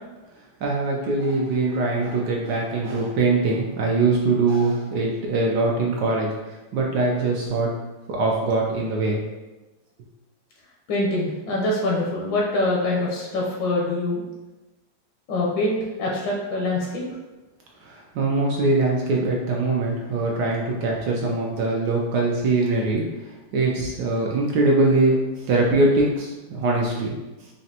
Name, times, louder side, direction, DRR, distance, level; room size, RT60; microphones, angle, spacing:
voice 1, 0.6-7.7 8.1-9.2 17.8-27.2, right 2 dB, 70° right, -2 dB, 1.1 m, -22 dB
voice 2, 10.9-14.2 15.3-17.0, left 2 dB, 80° left, -3 dB, 1.5 m, -24 dB
5.1 x 2.5 x 2.7 m, 1.1 s
omnidirectional pair, 2.0 m